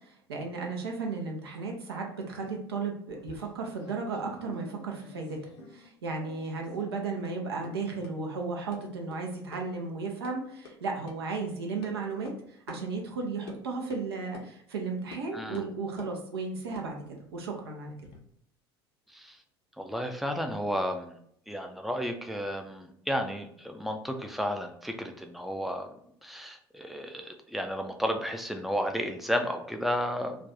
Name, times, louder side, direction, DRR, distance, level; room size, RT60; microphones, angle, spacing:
voice 1, 0.3-5.4 5.7-12.3 12.7-17.9, right 4 dB, 75° right, 1 dB, 0.6 m, -34 dB
sound 1, 3.1-5.9 6.1-6.9 7.2-7.3 7.6-7.7 8.0-8.1 8.7-8.8 9.1-9.2 9.5-9.6 9.9-10.3 10.7-10.8 11.1-11.2 11.8-11.9 12.3-12.4 12.7-12.8 13.5-13.6 13.9-14.0 14.3-14.5 15.1-15.2 15.5-16.2 16.7-18.2, left 3 dB, 65° left, 0.7 m, -48 dB
voice 2, 15.3-15.6 19.1-19.4 19.8-21.1 21.5-25.9 26.2-30.5, equal, ahead, 5 dB, 0.4 m, -32 dB
2.4 x 2.2 x 3.8 m, 0.69 s
figure-of-eight pair, 65°, 13 cm